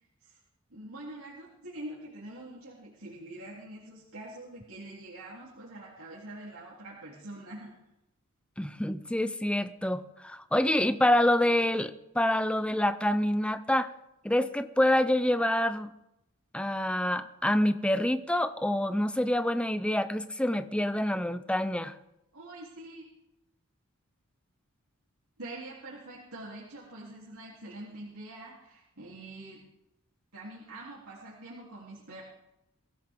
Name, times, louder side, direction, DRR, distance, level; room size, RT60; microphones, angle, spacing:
voice 1, 0.7-7.7 22.3-23.0 25.4-29.6 30.3-32.2, right 1 dB, 80° right, -6 dB, 3.3 m, -45 dB
voice 2, 8.6-13.9 14.2-15.9 16.5-21.9, left 1 dB, 5° left, 12 dB, 0.6 m, -27 dB
22.5 x 15.5 x 3.7 m, 0.86 s
head